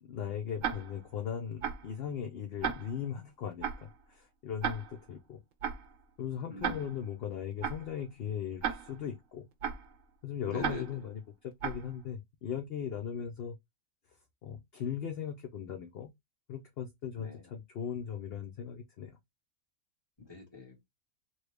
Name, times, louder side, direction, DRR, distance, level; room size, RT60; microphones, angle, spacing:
voice 1, 0.0-5.4 6.2-9.4 10.2-13.6 14.4-16.1 16.5-19.2, left 8 dB, 55° left, 0.7 m, -38 dB
Tick-tock, 0.6-1.1 1.6-2.0 2.6-3.1 3.6-4.0 4.6-5.1 5.6-6.0 6.6-7.1 7.6-8.0 8.6-9.1 9.6-10.0 10.6-11.1 11.6-12.0, right 7 dB, 75° right, 1.0 m, -36 dB
voice 2, 6.5-6.8 10.5-10.8 17.2-17.4 20.2-20.8, left 2 dB, 20° left, 1.3 m, -43 dB
3.0 x 2.3 x 3.2 m
omnidirectional pair, 1.4 m